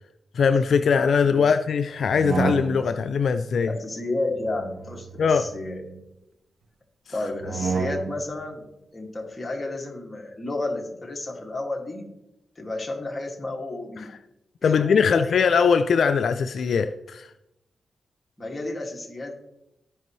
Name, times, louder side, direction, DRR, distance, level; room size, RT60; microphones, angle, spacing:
voice 1, 0.3-3.7 5.2-5.4 14.0-14.1 14.6-17.3, left 6 dB, 70° left, 0.3 m, -21 dB
sound 1, 2.0-3.1 4.4-6.0 7.3-8.3, right 4 dB, 70° right, 1.1 m, -31 dB
voice 2, 3.6-5.8 7.1-8.6 8.9-12.1 12.6-14.1 14.6-15.5 18.4-19.3, left 2 dB, 25° left, 2.1 m, -32 dB
14.5 x 5.3 x 3.1 m
cardioid pair, 85°, 0 cm